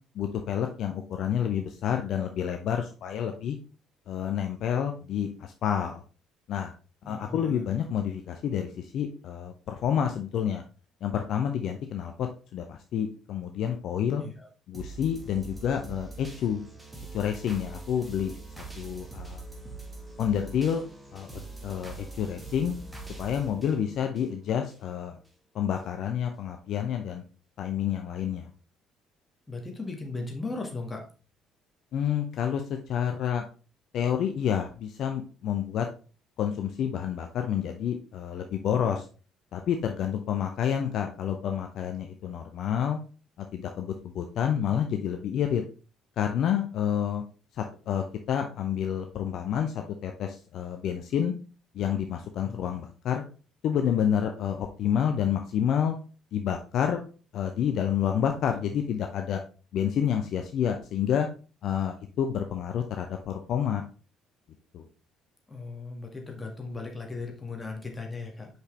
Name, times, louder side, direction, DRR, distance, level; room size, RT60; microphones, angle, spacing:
voice 1, 0.1-3.6 4.1-6.0 6.5-6.7 7.1-10.6 11.0-14.2 14.7-16.7 17.1-19.4 20.2-20.8 21.1-22.7 23.2-25.2 25.5-27.2 27.6-28.5 31.9-33.4 33.9-35.9 36.4-39.1 39.5-43.0 43.4-45.6 46.2-47.2 47.5-51.3 51.7-53.2 53.6-56.0 56.3-57.0 57.3-59.4 59.7-61.3 61.6-63.8 64.7-64.9, left 9 dB, 55° left, 5 dB, 0.6 m, -29 dB
voice 2, 7.0-7.7 14.2-14.5 29.5-31.0 52.4-52.7 65.5-68.5, left 3 dB, 20° left, 1 dB, 1.9 m, -37 dB
sound 1, 14.7-24.8 25.2-25.3, right 3 dB, 10° right, 2.0 m, -43 dB
6.0 x 5.3 x 3.3 m, 0.36 s
figure-of-eight pair, 50°, 0 cm